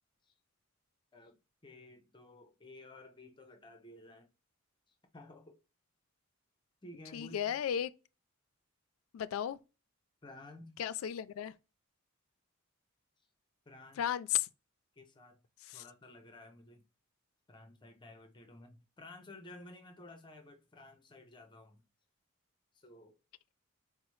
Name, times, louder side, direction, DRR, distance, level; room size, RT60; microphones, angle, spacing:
voice 1, 1.6-4.3 4.9-5.6 6.8-7.4 10.2-10.8 13.7-14.0 15.0-15.4 15.7-16.9 17.5-21.8 22.7-23.1, left 2 dB, 20° left, 0.5 m, -54 dB
voice 2, 7.1-7.9 9.1-9.6 10.8-11.5 14.0-14.5 15.7-15.8, left 10 dB, 80° left, 0.3 m, -34 dB
4.0 x 2.0 x 3.0 m
head